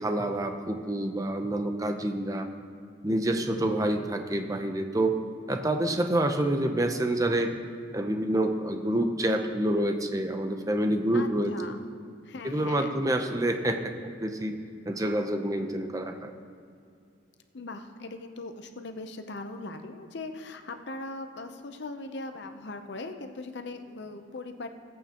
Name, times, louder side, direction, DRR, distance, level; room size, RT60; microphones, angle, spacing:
voice 1, 0.0-2.5 3.0-5.2 5.5-7.5 7.9-11.5 12.4-14.5 14.9-16.3, right 1 dB, 15° right, 5 dB, 0.6 m, -27 dB
voice 2, 11.1-11.8 12.3-13.0 17.5-24.7, left 2 dB, 60° left, 7 dB, 0.7 m, -40 dB
18.0 x 8.5 x 3.0 m, 2.3 s
head